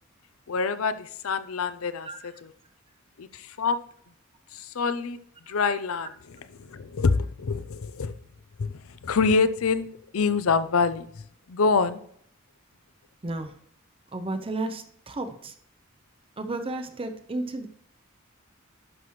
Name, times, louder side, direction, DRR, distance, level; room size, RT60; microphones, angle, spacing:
voice 1, 0.5-2.5 3.2-3.8 4.5-5.2 5.5-6.1 6.6-8.1 8.6-9.9 10.1-11.1 11.5-12.0, left 4 dB, 90° left, 14 dB, 0.6 m, -26 dB
voice 2, 14.1-15.5 16.4-17.7, right 2 dB, 25° right, 8 dB, 0.6 m, -32 dB
11.0 x 5.9 x 3.1 m, 0.65 s
head